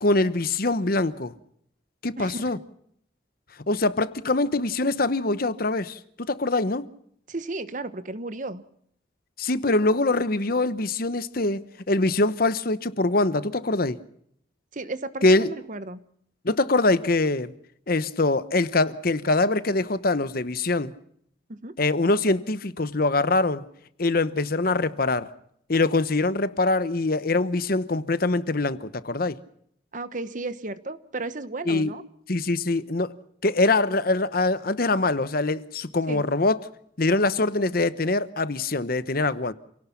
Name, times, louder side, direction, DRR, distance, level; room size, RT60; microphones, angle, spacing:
voice 1, 0.0-1.3 2.0-2.6 3.7-6.8 9.4-14.0 15.2-15.5 16.4-17.5 17.9-20.9 21.8-23.6 24.0-25.3 25.7-29.3 31.7-31.9 32.3-33.1 33.4-36.6 37.0-39.5, left 2 dB, 50° left, 1.0 m, -23 dB
voice 2, 2.2-2.6 7.3-8.6 14.7-16.0 21.5-21.7 29.9-32.0 36.1-36.3, right 2 dB, 40° right, 1.1 m, -34 dB
28.0 x 18.0 x 5.8 m
head